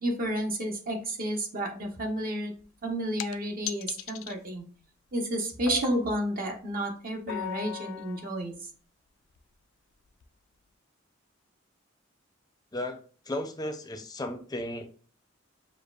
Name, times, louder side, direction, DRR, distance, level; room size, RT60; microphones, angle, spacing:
voice 1, 0.0-2.5 2.8-4.6 5.1-8.5, right 1 dB, 45° right, 2 dB, 0.9 m, -31 dB
sound 1, 2.6-2.7 3.2-3.4 3.7-4.3 5.7-6.2 7.3-8.3 9.4-9.5 10.2-10.3, left 9 dB, 85° left, 0.3 m, -37 dB
voice 2, 12.7-14.9, left 1 dB, 20° left, 6 dB, 0.5 m, -35 dB
6.5 x 2.4 x 2.3 m, 0.40 s
head